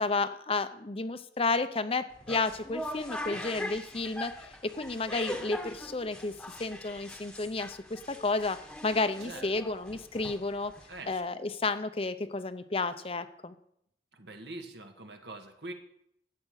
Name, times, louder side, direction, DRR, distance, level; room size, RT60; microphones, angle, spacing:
voice 1, 0.0-6.3 6.6-8.6 8.8-10.7 11.1-13.5, left 3 dB, 35° left, 10 dB, 0.7 m, -32 dB
sound 1, 2.1-11.1, left 1 dB, 5° left, 1.2 m, -41 dB
voice 2, 9.2-9.7 10.9-11.2 14.1-15.7, right 2 dB, 70° right, 5 dB, 1.7 m, -44 dB
12.5 x 8.6 x 6.5 m, 0.73 s
head